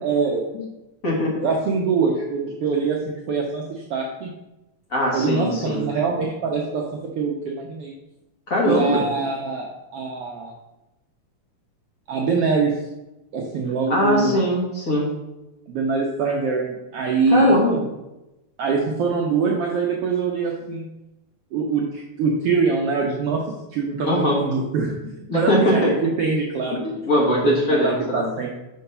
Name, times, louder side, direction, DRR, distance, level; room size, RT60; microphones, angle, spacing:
voice 1, 0.0-0.5 1.4-4.3 5.1-7.9 8.6-10.5 12.1-12.7 13.3-14.4 15.7-17.6 18.6-20.9 21.5-23.4 23.7-26.8 27.4-28.6, right 4 dB, 75° right, -1 dB, 1.4 m, -23 dB
voice 2, 1.0-1.4 4.9-5.8 8.5-9.0 13.9-15.1 17.3-17.8 24.1-24.4 25.3-25.9 27.1-28.2, left 1 dB, 55° left, -3 dB, 0.9 m, -21 dB
5.7 x 4.6 x 5.4 m, 0.97 s
omnidirectional pair, 3.4 m